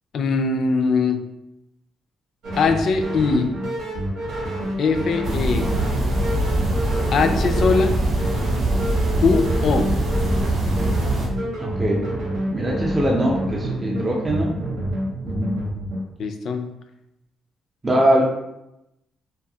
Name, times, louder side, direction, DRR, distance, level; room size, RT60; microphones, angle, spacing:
voice 1, 0.1-1.2 2.6-3.5 4.8-5.7 7.1-8.0 9.2-9.9 16.2-16.7, left 4 dB, 65° left, 7 dB, 0.3 m, -21 dB
sound 1, 2.4-16.0, right 1 dB, 90° right, 1.1 m, -28 dB
sound 2, 5.2-11.3, right 1 dB, 70° right, 0.8 m, -22 dB
voice 2, 11.6-12.0 12.5-14.6 15.2-15.5 17.8-18.2, right 1 dB, 25° right, -2 dB, 0.5 m, -21 dB
2.7 x 2.3 x 2.7 m, 0.87 s
cardioid pair, 90°, 0 cm